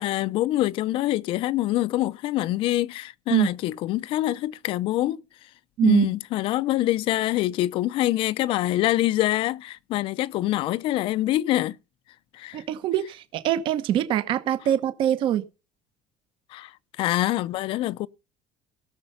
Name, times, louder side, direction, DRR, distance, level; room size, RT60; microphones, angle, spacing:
voice 1, 0.0-5.2 5.8-11.8 12.3-12.6 16.5-18.1, left 15 dB, 50° left, 0.5 m, -25 dB
voice 2, 5.8-6.1 12.5-15.4, right 11 dB, 50° right, 1.1 m, -23 dB
17.5 x 6.7 x 5.6 m
cardioid pair, 165°, 11 cm